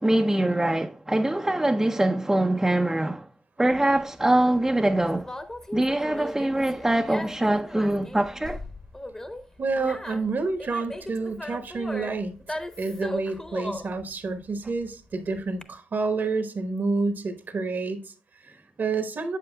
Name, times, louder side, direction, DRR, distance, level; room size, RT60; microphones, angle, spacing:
voice 1, 0.0-3.3 3.6-5.3 5.7-8.6, right 1 dB, 15° right, 0.5 m, -23 dB
Conversation, 3.7-15.6, left 1 dB, 15° left, 0.9 m, -38 dB
voice 2, 9.6-12.3 12.8-19.4, right 3 dB, 60° right, 1.1 m, -29 dB
7.6 x 7.3 x 2.2 m
supercardioid pair, 50°, 4 cm